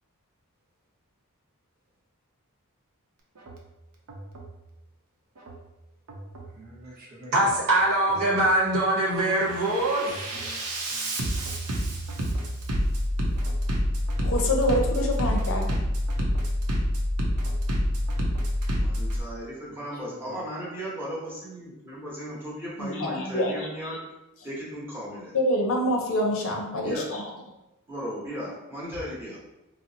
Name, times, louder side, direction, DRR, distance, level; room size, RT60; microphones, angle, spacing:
Bass drum, 3.4-3.6 4.1-4.6 5.4-5.6 6.1-6.6 7.4-7.6 8.1-8.6 9.0-19.2, equal, 90° right, 0.6 m, -28 dB
voice 1, 6.5-7.5 10.2-10.6 10.9-11.1 19.7-19.8 20.1-20.4, right 1 dB, 45° right, -3 dB, 0.7 m, -47 dB
voice 2, 7.3-10.3, right 1 dB, 65° right, -4 dB, 0.9 m, -23 dB
voice 3, 14.2-15.7 22.8-24.0 25.3-27.3, left 1 dB, 65° left, 1 dB, 0.6 m, -26 dB
voice 4, 18.7-24.0 24.4-25.3 26.8-27.1 27.9-29.4, equal, 10° right, -7 dB, 1.0 m, -36 dB
3.9 x 2.0 x 2.7 m, 0.96 s
head